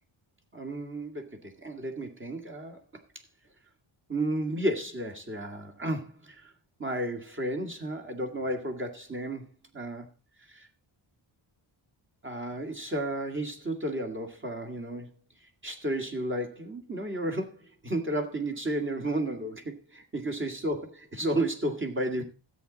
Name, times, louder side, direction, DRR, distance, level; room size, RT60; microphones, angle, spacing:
voice 1, 0.5-2.8 4.1-6.5 6.8-9.5 9.7-10.1 10.5-10.7 12.2-15.1 15.6-22.2, right 1 dB, 25° right, 2.1 m, -32 dB
13.5 x 8.6 x 4.0 m
wide cardioid pair, 135°, 48 cm